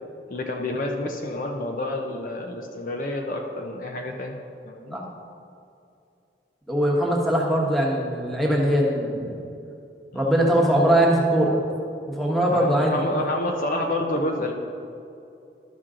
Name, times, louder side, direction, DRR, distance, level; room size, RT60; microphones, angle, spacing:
voice 1, 0.3-4.3 4.6-5.0 10.2-10.3 12.5-14.5, left 1 dB, 45° left, 2 dB, 0.6 m, -28 dB
voice 2, 6.7-9.4 10.1-11.6 12.2-13.0, right 1 dB, ahead, -3 dB, 1.1 m, -21 dB
12.0 x 6.1 x 3.7 m, 2.6 s
head